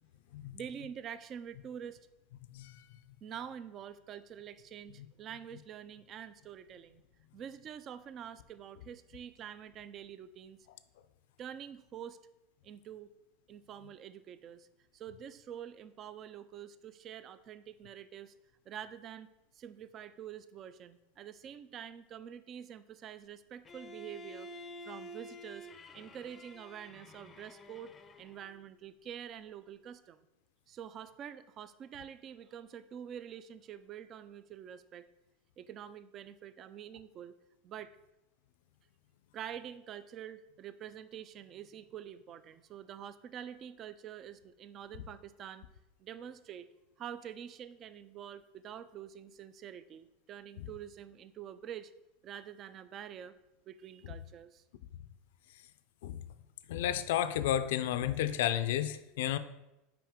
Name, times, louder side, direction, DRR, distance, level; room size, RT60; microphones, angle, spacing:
voice 1, 0.5-2.0 3.2-7.0 7.3-10.6 11.4-12.2 12.6-13.1 13.5-14.7 14.9-18.3 18.7-25.7 25.9-30.2 30.7-35.1 35.6-37.3 37.6-37.9 39.3-45.6 46.0-46.7 47.0-51.9 52.2-53.3 53.7-54.6, right 9 dB, 35° right, 13 dB, 0.3 m, -46 dB
Bowed string instrument, 23.6-28.6, equal, 20° left, 0.5 m, -50 dB
voice 2, 56.7-59.4, left 11 dB, 80° left, 13 dB, 0.4 m, -32 dB
5.9 x 4.8 x 3.6 m, 0.95 s
supercardioid pair, 125°, 0 cm